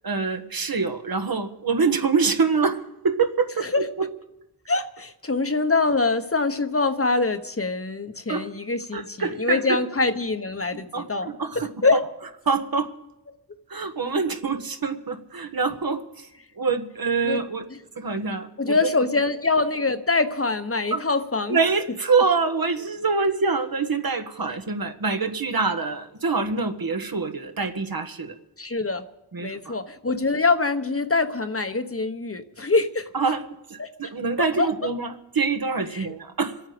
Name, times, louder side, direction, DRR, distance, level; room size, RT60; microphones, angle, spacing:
voice 1, 0.0-4.1 8.3-8.5 8.9-9.8 10.7-11.8 12.4-12.9 13.7-16.3 16.6-17.6 17.9-18.9 20.9-21.1 21.5-28.3 29.3-29.7 33.1-33.4 33.7-36.6, right 4 dB, 55° right, 6 dB, 1.5 m, -25 dB
voice 2, 4.7-11.3 11.8-12.0 17.2-17.4 18.6-21.6 28.6-29.1 29.4-33.1 33.8-33.9 34.6-34.7 35.9-36.1, left 3 dB, 30° left, 9 dB, 1.1 m, -24 dB
26.5 x 8.9 x 5.1 m, 0.91 s
cardioid pair, 45°, 42 cm